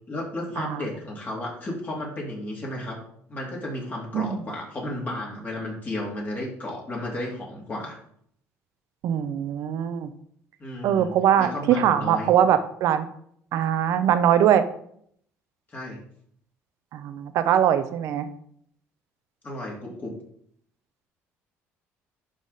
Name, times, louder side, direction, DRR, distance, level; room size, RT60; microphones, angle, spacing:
voice 1, 0.1-3.0 3.3-8.0 10.6-12.3 15.7-16.0 19.4-20.2, left 1 dB, 35° left, -2 dB, 2.5 m, -33 dB
voice 2, 9.0-10.1 10.8-13.1 13.5-14.6 16.9-18.3, right 10 dB, 70° right, 11 dB, 0.7 m, -22 dB
11.5 x 3.8 x 4.0 m, 0.66 s
cardioid pair, 95°, 5 cm